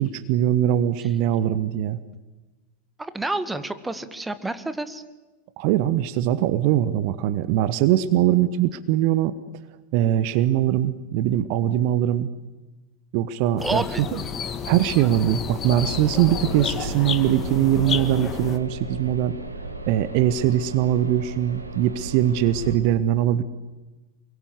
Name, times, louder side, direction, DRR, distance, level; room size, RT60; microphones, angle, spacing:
voice 1, 0.0-2.0 5.6-9.3 9.9-12.3 13.1-13.8 14.1-14.2 14.6-19.4 19.9-23.4, right 12 dB, 45° right, 14 dB, 1.2 m, -21 dB
voice 2, 3.0-5.0 13.6-14.0, right 2 dB, 5° right, 12 dB, 1.9 m, -29 dB
sound 1, 13.6-18.6, left 6 dB, 25° left, 2.1 m, -31 dB
sound 2, 15.8-22.8, right 2 dB, 80° right, 3.0 m, -35 dB
29.0 x 22.5 x 8.4 m, 1.2 s
figure-of-eight pair, 90°, 0 cm